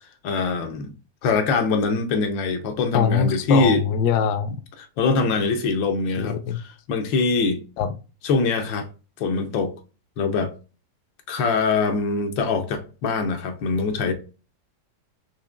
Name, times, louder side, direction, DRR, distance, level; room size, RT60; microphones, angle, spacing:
voice 1, 0.2-0.9 1.2-3.8 5.0-6.6 6.9-7.6 8.2-8.9 9.2-9.7 10.2-10.5 11.3-14.1, left 4 dB, 90° left, 1.5 m, -23 dB
voice 2, 2.9-4.6 6.2-6.6 7.8-7.9, left 7 dB, 70° left, 1.0 m, -23 dB
4.8 x 2.8 x 2.4 m
omnidirectional pair, 2.0 m